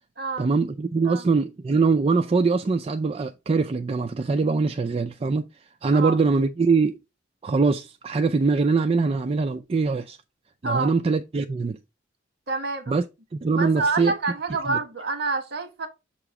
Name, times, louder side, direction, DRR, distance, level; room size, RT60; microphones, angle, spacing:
voice 1, 0.4-5.5 5.8-7.0 7.4-10.2 10.6-11.8 12.9-13.0 13.3-14.1 14.7-14.8, right 4 dB, 30° right, 0.4 m, -23 dB
voice 2, 12.5-12.9 13.5-15.9, right 3 dB, 55° right, 1.4 m, -27 dB
6.8 x 3.0 x 4.7 m
head